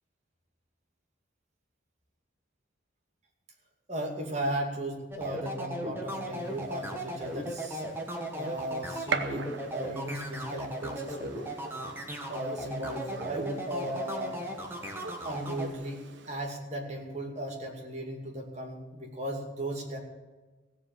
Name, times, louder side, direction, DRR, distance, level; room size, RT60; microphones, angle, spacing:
voice 1, 3.9-7.8 8.3-11.4 12.3-14.4 15.2-20.0, right 1 dB, 35° right, 1 dB, 2.5 m, -36 dB
sound 1, 5.1-15.7, right 1 dB, 10° right, 1.6 m, -37 dB
Gunshot gunfire, 6.4-16.3, right 5 dB, 65° right, 0.9 m, -42 dB
16.5 x 7.7 x 7.8 m, 1.2 s
head